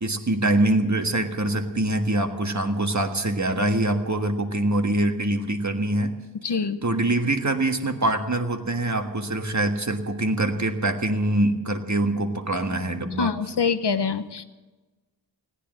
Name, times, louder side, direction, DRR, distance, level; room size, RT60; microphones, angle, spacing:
voice 1, 0.0-6.1 6.8-13.3, right 1 dB, 45° right, 5 dB, 1.6 m, -24 dB
voice 2, 6.4-6.8 13.2-14.4, left 5 dB, 75° left, 12 dB, 0.9 m, -25 dB
18.0 x 10.0 x 7.7 m, 1.2 s
wide cardioid pair, 60°, 41 cm